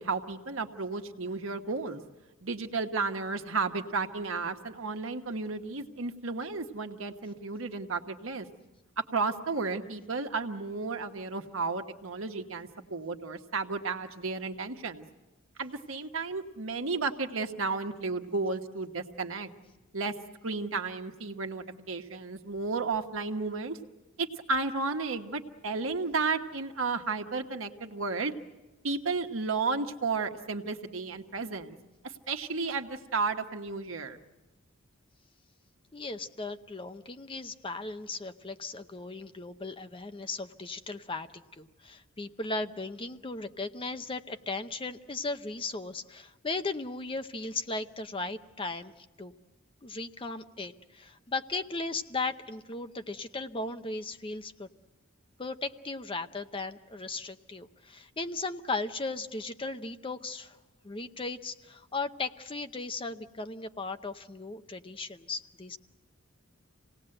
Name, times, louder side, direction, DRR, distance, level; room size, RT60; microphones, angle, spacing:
voice 1, 0.0-2.0 2.4-8.5 9.0-15.0 15.6-19.5 19.9-20.2 20.4-23.8 24.2-28.3 28.8-31.7 32.0-34.2, right 4 dB, 80° right, 5 dB, 1.3 m, -33 dB
voice 2, 35.9-48.9 49.2-49.3 49.8-54.7 55.4-60.6 60.8-65.8, left 3 dB, 25° left, 9 dB, 0.7 m, -37 dB
27.0 x 18.5 x 7.8 m, 1.1 s
head